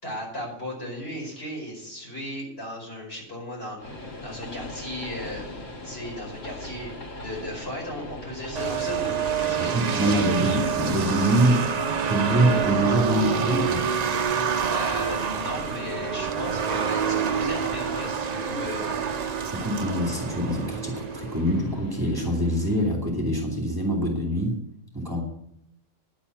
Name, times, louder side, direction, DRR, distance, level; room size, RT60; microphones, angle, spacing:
voice 1, 0.0-3.8 4.2-5.5 5.8-10.6 14.7-18.9, equal, 50° left, -2 dB, 5.3 m, -36 dB
Train, 3.8-22.9, left 1 dB, 70° left, 2.8 m, -39 dB
sound 1, 8.6-21.6, right 7 dB, 45° right, 0.5 m, -27 dB
voice 2, 9.6-11.7 12.1-13.9 19.3-24.6 24.9-25.2, right 1 dB, 15° right, 0 dB, 2.7 m, -24 dB
10.5 x 8.5 x 8.0 m, 0.76 s
omnidirectional pair, 1.4 m